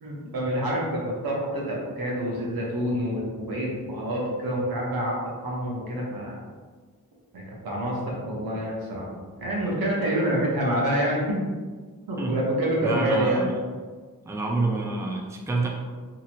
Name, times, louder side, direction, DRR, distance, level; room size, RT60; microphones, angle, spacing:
voice 1, 0.0-5.1 5.4-6.4 7.3-9.1 9.4-11.2 12.1-13.4, right 1 dB, 85° right, -3 dB, 0.9 m, -27 dB
voice 2, 12.8-13.5 14.3-15.7, right 2 dB, 10° right, -1 dB, 0.4 m, -27 dB
2.9 x 2.5 x 2.8 m, 1.5 s
wide cardioid pair, 80°, 35 cm